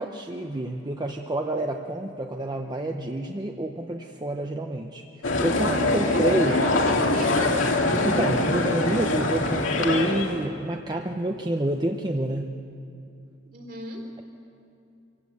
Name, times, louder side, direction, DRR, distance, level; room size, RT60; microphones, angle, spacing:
voice 1, 0.0-6.6 8.0-12.6, right 1 dB, 20° right, 3 dB, 0.7 m, -28 dB
sound 1, 5.2-10.4, left 2 dB, 85° left, 2.3 m, -23 dB
voice 2, 6.0-7.8 13.5-14.1, equal, 50° right, 1 dB, 3.4 m, -36 dB
24.5 x 16.5 x 8.2 m, 2.7 s
head